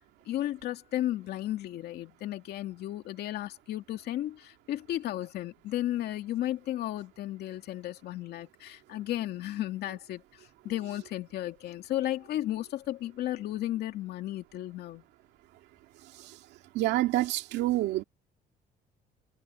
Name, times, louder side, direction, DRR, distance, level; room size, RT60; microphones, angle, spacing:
voice 1, 0.3-15.0, left 13 dB, 70° left, 2.4 m, -34 dB
voice 2, 16.7-18.0, right 16 dB, 85° right, 2.3 m, -27 dB
cardioid pair, 110°, 17 cm